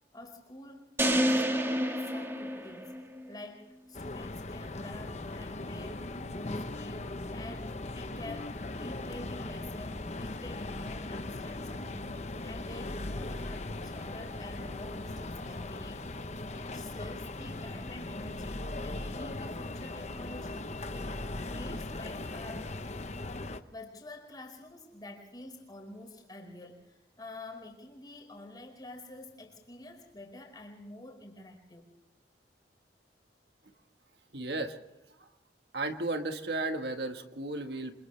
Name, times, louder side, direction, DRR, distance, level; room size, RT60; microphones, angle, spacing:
voice 1, 0.1-3.0 3.3-16.1 16.5-22.7 23.7-31.9, left 1 dB, 25° left, 1 dB, 4.9 m, -48 dB
sound 1, 1.0-3.3, equal, 15° right, 1.6 m, -29 dB
sound 2, 3.9-23.6, left 2 dB, 40° left, 0.9 m, -39 dB
voice 2, 34.3-34.8 35.7-37.9, right 2 dB, 70° right, 6 dB, 1.5 m, -34 dB
29.5 x 26.5 x 3.3 m, 0.91 s
head